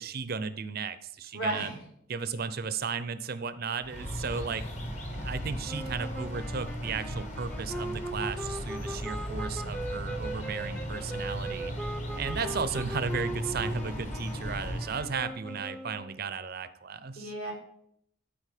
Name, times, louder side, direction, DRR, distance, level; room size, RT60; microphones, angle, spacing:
voice 1, 0.0-1.7 2.1-4.6 5.1-11.7 12.2-17.3, right 5 dB, 45° right, 14 dB, 0.5 m, -35 dB
voice 2, 1.3-1.8 12.4-12.5 17.2-17.5, right 1 dB, 65° left, -3 dB, 4.1 m, -33 dB
sound 1, 3.8-15.2, equal, 35° left, 1.5 m, -37 dB
sound 2, 5.7-16.2, right 1 dB, 5° left, 0.6 m, -40 dB
12.0 x 5.0 x 4.9 m, 0.72 s
head